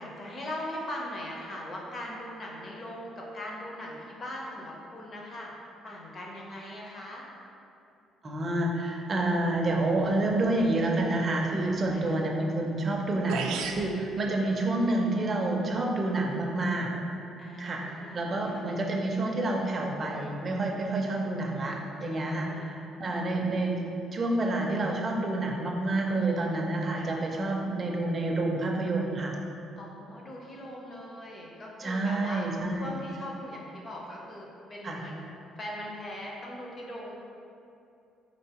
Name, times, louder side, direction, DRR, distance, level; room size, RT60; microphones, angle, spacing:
voice 1, 0.0-5.5 5.8-7.2 11.9-12.3 17.4-18.6 22.3-23.3 27.0-27.2 29.8-32.5 32.7-35.3 35.5-37.1, left 1 dB, 25° left, -2 dB, 0.6 m, -40 dB
voice 2, 8.2-16.9 17.6-23.8 24.1-29.3 31.8-32.9 34.8-35.0, right 2 dB, 25° right, 0 dB, 0.4 m, -28 dB
sound 1, 12.9-13.0 13.3-13.9, right 6 dB, 85° right, 0.3 m, -32 dB
4.5 x 3.6 x 2.8 m, 2.7 s
cardioid pair, 180°, 0 cm